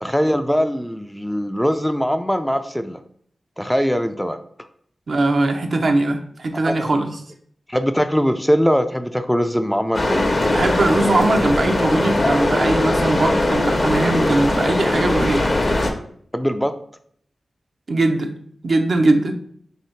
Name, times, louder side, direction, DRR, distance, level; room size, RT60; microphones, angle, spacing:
voice 1, 0.0-3.0 3.6-4.4 6.7-7.0 7.7-10.2 16.3-16.7, equal, 5° left, 8 dB, 0.3 m, -21 dB
voice 2, 5.1-7.2 10.5-15.5 17.9-18.3 18.6-19.3, right 2 dB, 65° right, 5 dB, 0.5 m, -20 dB
sound 1, 9.9-15.9, left 1 dB, 45° left, 0.7 m, -20 dB
3.0 x 2.8 x 4.4 m, 0.62 s
cardioid pair, 50°, 0 cm